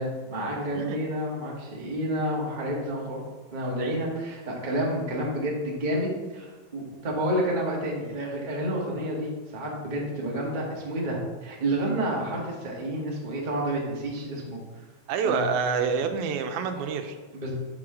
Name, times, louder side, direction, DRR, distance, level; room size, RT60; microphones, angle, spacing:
voice 1, 0.0-3.2 3.5-14.6 15.2-15.8 17.3-17.5, right 1 dB, 40° right, -3 dB, 0.6 m, -30 dB
voice 2, 15.1-17.2, right 6 dB, 85° right, 7 dB, 2.1 m, -27 dB
6.2 x 4.9 x 4.8 m, 1.3 s
omnidirectional pair, 3.4 m